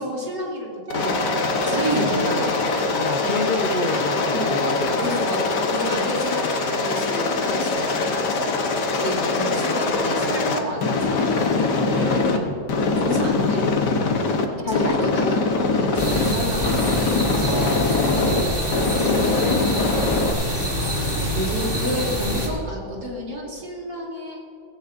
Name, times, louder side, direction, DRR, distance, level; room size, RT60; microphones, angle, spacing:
voice 1, 0.0-2.7 4.3-4.6 5.0-5.4 5.7-6.4 6.7-8.5 9.0-12.3 13.0-13.8 14.7-18.4 19.0-19.3 20.7-24.4, equal, 75° right, -4 dB, 3.9 m, -30 dB
Aircraft, 0.9-12.4 12.7-14.5 14.7-16.3 16.6-18.4 18.7-20.3, left 3 dB, 70° left, 1.7 m, -23 dB
Wind instrument woodwind instrument, 0.9-5.2 5.8-5.9, right 7 dB, 50° right, 0.5 m, -37 dB
voice 2, 2.9-5.0 12.3-12.6 14.6-15.4 17.4-19.1, left 2 dB, 40° left, 1 dB, 0.7 m, -28 dB
sound 1, 16.0-22.5, equal, 15° right, 2.2 m, -26 dB
18.0 x 16.0 x 2.6 m, 2.5 s
omnidirectional pair, 1.9 m